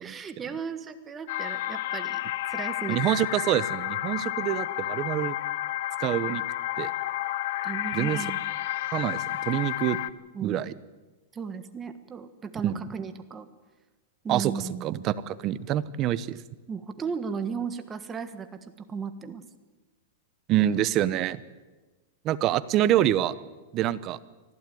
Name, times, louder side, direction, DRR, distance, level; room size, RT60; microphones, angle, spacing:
voice 1, 0.0-3.0 4.1-4.4 7.6-8.4 10.3-10.7 11.3-13.5 14.2-14.8 16.7-19.4, right 6 dB, 15° right, 9 dB, 1.4 m, -36 dB
sound 1, 1.3-10.1, left 15 dB, 55° left, 0.8 m, -31 dB
voice 2, 2.9-5.3 6.0-6.4 6.8-6.9 7.9-8.2 8.9-10.0 10.4-10.7 12.6-12.8 14.3-14.5 14.8-16.4 20.5-21.4 22.2-23.3 23.7-24.2, right 12 dB, 30° right, 16 dB, 0.9 m, -26 dB
24.5 x 15.0 x 9.2 m, 1.2 s
supercardioid pair, 160°, 0 cm